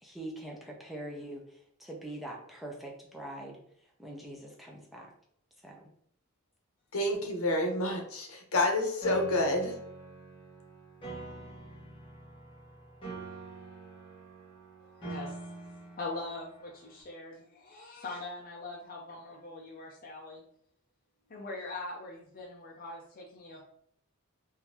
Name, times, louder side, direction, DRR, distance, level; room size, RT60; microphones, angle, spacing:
voice 1, 0.0-3.6 4.0-5.1 5.6-5.8, right 1 dB, ahead, -2 dB, 0.6 m, -43 dB
voice 2, 6.9-9.7, left 1 dB, 80° left, 2 dB, 0.9 m, -29 dB
Piano, 9.0-17.0, right 2 dB, 25° left, 1.1 m, -44 dB
voice 3, 16.0-20.4 21.3-23.6, left 2 dB, 40° left, -2 dB, 0.5 m, -42 dB
3.7 x 2.6 x 2.8 m, 0.67 s
head